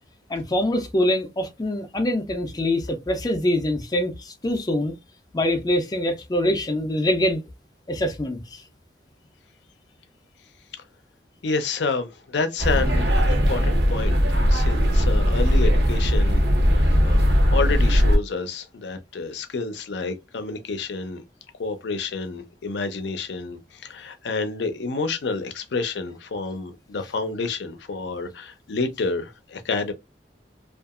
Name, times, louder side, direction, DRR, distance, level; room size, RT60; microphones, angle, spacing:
voice 1, 0.3-5.0 5.3-7.4 7.9-8.6, left 1 dB, 20° left, 0.4 m, -24 dB
voice 2, 11.4-14.2 14.5-16.4 16.7-21.2 21.6-29.9, left 4 dB, 80° left, 0.5 m, -29 dB
sound 1, 12.6-18.2, equal, 65° right, 0.7 m, -19 dB
2.7 x 2.4 x 2.3 m
head